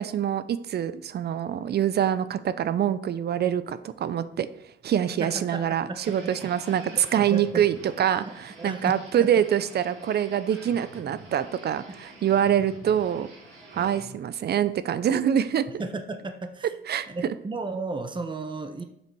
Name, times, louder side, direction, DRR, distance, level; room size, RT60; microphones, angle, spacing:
voice 1, 0.0-4.5 4.8-13.3 13.7-15.6 16.9-17.1, right 9 dB, 55° right, 14 dB, 0.6 m, -25 dB
voice 2, 5.2-6.3 6.9-7.0 7.3-7.6 8.6-8.9 9.2-9.3 13.7-14.2 15.8-16.7 17.1-18.8, right 3 dB, 25° right, 7 dB, 1.0 m, -34 dB
sound 1, 6.0-14.0, right 2 dB, 85° right, 4.3 m, -47 dB
7.6 x 6.0 x 6.2 m, 0.79 s
cardioid pair, 90°, 20 cm